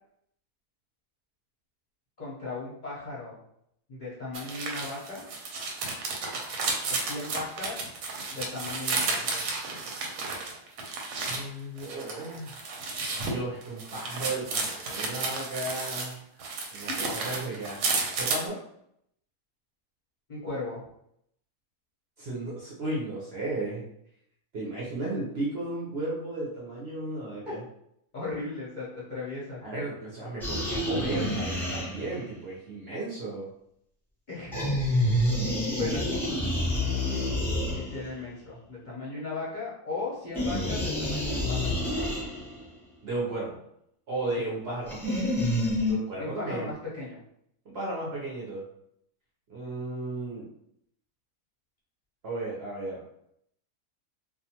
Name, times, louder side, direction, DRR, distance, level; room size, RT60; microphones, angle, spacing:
voice 1, 2.2-3.4 3.9-5.3 6.9-7.9 8.3-9.4 20.3-20.8 27.5-27.6 28.1-29.6 34.3-34.6 34.9-35.0 35.8-36.2 37.1-37.3 37.7-41.7 44.4-44.5 46.2-47.2, left 3 dB, 45° left, -8 dB, 0.6 m, -37 dB
sound 1, 4.3-11.4 11.8-16.1 16.4-18.4, right 3 dB, 90° right, 1.1 m, -32 dB
voice 2, 11.3-12.5 13.1-16.2 16.7-17.8 18.2-18.6 22.2-23.8 24.5-27.6 29.6-33.5 43.0-43.6 44.1-45.3 45.9-46.7 47.6-48.6 49.5-50.5 52.2-53.0, right 2 dB, 55° right, -5 dB, 0.7 m, -34 dB
sound 2, 30.4-32.3 34.5-38.2 40.3-42.6 44.9-45.9, left 1 dB, ahead, 0.5 m, -28 dB
2.4 x 2.3 x 2.8 m, 0.74 s
omnidirectional pair, 1.7 m